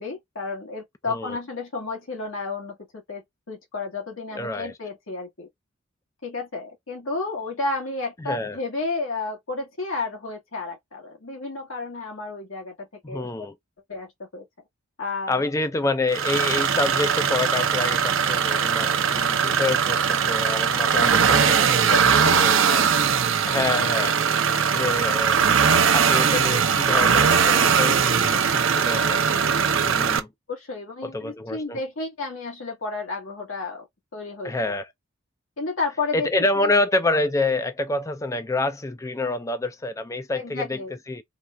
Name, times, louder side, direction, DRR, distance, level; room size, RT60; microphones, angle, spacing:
voice 1, 0.0-2.8 3.1-3.2 3.5-5.5 6.2-13.5 13.9-14.4 15.0-15.4 20.9-21.2 21.9-22.9 29.8-29.9 30.5-33.9 34.1-34.5 35.6-36.3 36.6-36.7 40.3-40.9, left 3 dB, 85° left, 1.7 m, -32 dB
voice 2, 1.1-1.4 4.4-4.7 8.2-8.6 13.0-13.5 15.3-22.0 22.4-22.8 23.5-24.2 24.7-25.4 25.9-29.5 29.9-30.3 31.0-31.8 34.4-34.9 36.1-40.8 41.1-41.2, left 2 dB, 15° left, 0.4 m, -27 dB
sound 1, 16.1-30.2, right 7 dB, 70° right, 0.7 m, -20 dB
3.7 x 2.4 x 4.3 m
head